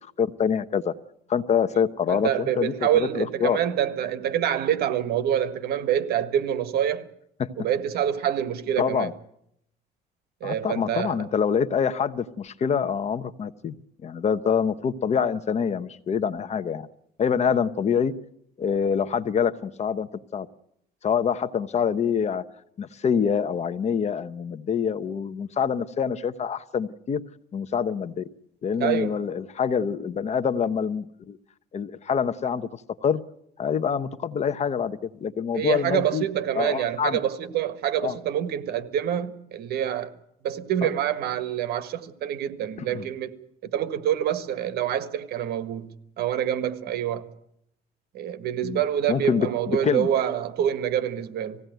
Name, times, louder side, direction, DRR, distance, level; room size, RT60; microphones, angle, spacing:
voice 1, 0.2-0.9 1.3-3.6 7.4-7.5 8.8-9.1 10.4-13.7 14.0-16.9 17.2-18.1 18.6-20.5 21.0-22.4 22.8-27.2 27.5-28.2 28.6-31.4 31.7-33.2 33.6-36.3 36.5-37.2 38.0-38.1 40.8-40.9 42.8-43.1 48.6-48.8 49.1-50.1, left 7 dB, 40° left, 0.9 m, -26 dB
voice 2, 2.1-7.1 7.6-9.1 10.4-11.3 28.8-29.1 35.5-40.1 40.4-43.3 43.6-47.3 48.1-51.6, right 10 dB, 70° right, 1.6 m, -26 dB
19.5 x 16.0 x 9.2 m
cardioid pair, 110°, 17 cm